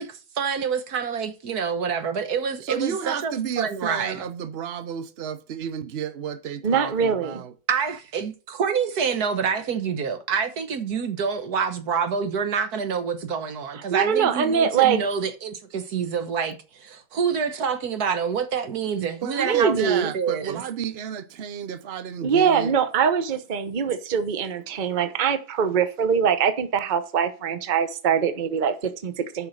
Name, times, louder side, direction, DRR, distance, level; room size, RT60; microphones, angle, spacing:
voice 1, 0.0-4.3 7.7-19.8 20.1-20.6, right 6 dB, 55° right, 1.4 m, -27 dB
voice 2, 2.6-7.5 19.2-22.7, right 8 dB, 80° right, 0.5 m, -31 dB
voice 3, 6.6-7.4 13.9-15.0 19.4-20.1 22.2-29.5, right 7 dB, 35° right, 0.8 m, -23 dB
9.3 x 5.8 x 6.4 m
omnidirectional pair, 2.2 m